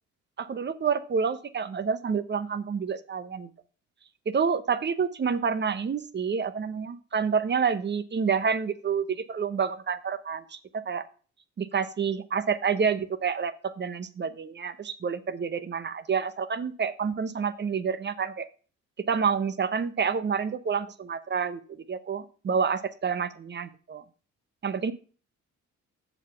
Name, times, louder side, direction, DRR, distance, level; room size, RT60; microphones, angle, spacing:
voice 1, 0.4-3.5 4.3-11.0 11.6-18.5 19.1-24.0 24.6-24.9, right 6 dB, 35° right, 13 dB, 0.8 m, -28 dB
7.2 x 5.9 x 5.7 m, 0.39 s
cardioid pair, 90°, 30 cm